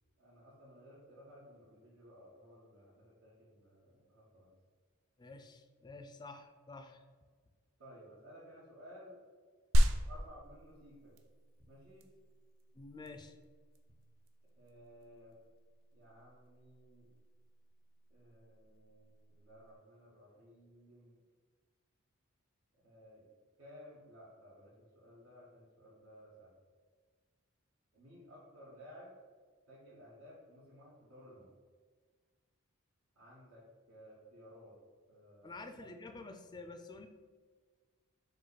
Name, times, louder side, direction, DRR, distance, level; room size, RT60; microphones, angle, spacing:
voice 1, 0.2-4.5 7.8-9.2 10.1-11.1 11.7-12.1 14.6-15.4 15.9-17.1 18.1-21.2 22.8-23.3 23.6-26.5 27.9-29.1 29.7-31.5 33.1-34.8 35.1-35.9, equal, 85° right, -10 dB, 1.2 m, -57 dB
voice 2, 5.2-7.0 12.7-13.4 35.4-37.1, left 3 dB, 20° left, 6 dB, 0.3 m, -49 dB
sound 1, 9.7-19.7, equal, 60° right, 0.4 m, -36 dB
5.1 x 2.3 x 4.0 m, 1.5 s
head